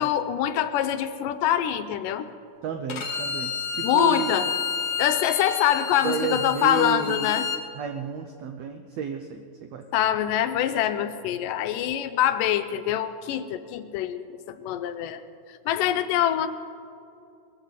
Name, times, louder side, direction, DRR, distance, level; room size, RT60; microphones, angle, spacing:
voice 1, 0.0-2.3 3.8-4.4 5.0-7.5 9.9-15.2 15.7-16.5, left 11 dB, 80° left, 10 dB, 2.2 m, -24 dB
voice 2, 2.6-4.3 6.0-7.3 7.7-9.9, right 6 dB, 90° right, 6 dB, 1.4 m, -32 dB
Bowed string instrument, 2.9-7.6, left 6 dB, 65° left, 2.5 m, -30 dB
21.0 x 13.5 x 4.1 m, 2.6 s
omnidirectional pair, 3.9 m